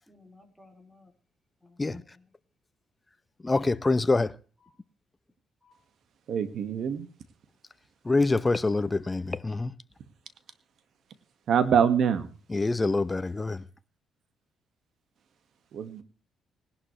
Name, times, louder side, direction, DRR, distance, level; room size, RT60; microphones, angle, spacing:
voice 1, 0.1-1.1 1.6-2.3 4.6-4.7 5.6-5.8, left 2 dB, 5° right, 4.8 m, -57 dB
voice 2, 3.4-4.3 8.0-9.7 12.5-13.6, left 3 dB, 20° left, 0.9 m, -25 dB
voice 3, 6.3-7.1 11.5-12.3 15.7-16.0, right 7 dB, 65° right, 1.9 m, -24 dB
19.5 x 11.5 x 3.3 m
cardioid pair, 90°, 0 cm